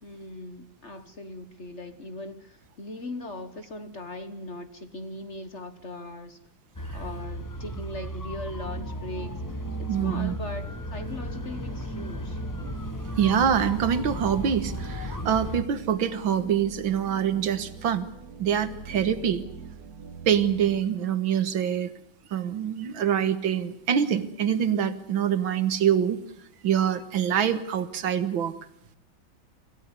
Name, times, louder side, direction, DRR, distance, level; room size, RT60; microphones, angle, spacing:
voice 1, 0.0-6.4 6.9-12.4, left 2 dB, 40° left, 10 dB, 1.5 m, -39 dB
sound 1, 6.7-15.6, equal, 20° left, 0.5 m, -35 dB
sound 2, 8.6-20.8, right 5 dB, 50° right, 1.9 m, -42 dB
voice 2, 9.9-10.3 13.2-18.1 18.4-19.4 20.3-21.9 22.3-26.2 26.6-28.5, right 8 dB, 75° right, 12 dB, 2.1 m, -25 dB
25.5 x 15.5 x 9.8 m, 0.75 s
omnidirectional pair, 2.2 m